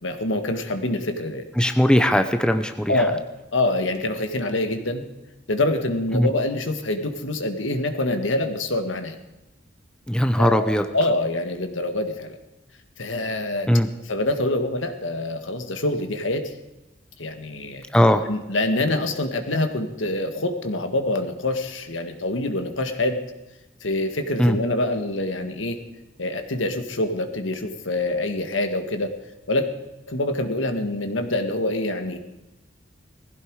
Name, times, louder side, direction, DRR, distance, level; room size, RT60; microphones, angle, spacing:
voice 1, 0.0-1.4 2.9-3.2 3.5-5.0 5.5-9.2 10.4-12.4 13.0-13.7 14.1-16.5 17.2-17.8 18.3-23.2 23.8-25.8 26.2-29.1 29.5-29.6 30.1-32.2, left 2 dB, 75° left, 7 dB, 1.8 m, -25 dB
voice 2, 1.6-3.1 6.1-6.3 10.1-10.9 13.7-13.9 17.9-18.3 24.4-24.6, equal, 5° left, 7 dB, 0.8 m, -19 dB
19.0 x 15.5 x 4.9 m, 1.0 s
head